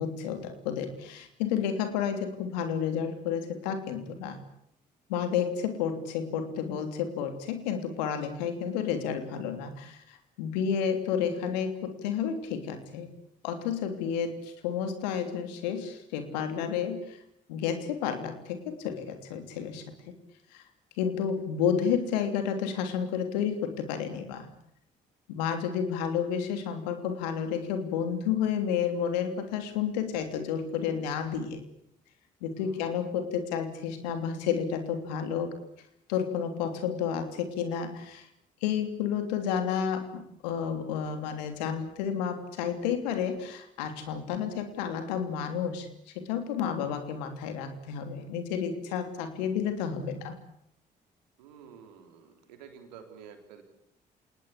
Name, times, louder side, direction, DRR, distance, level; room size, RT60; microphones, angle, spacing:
voice 1, 0.0-4.4 5.1-13.1 13.4-17.2 17.5-19.8 20.5-20.6 21.0-24.5 25.3-31.6 32.4-35.5 36.1-38.3 38.6-50.4, left 7 dB, 80° left, 7 dB, 3.2 m, -31 dB
voice 2, 32.6-33.1 51.4-53.6, right 7 dB, 80° right, 5 dB, 3.6 m, -50 dB
27.5 x 19.5 x 8.6 m, 0.73 s
hypercardioid pair, 45°, 21 cm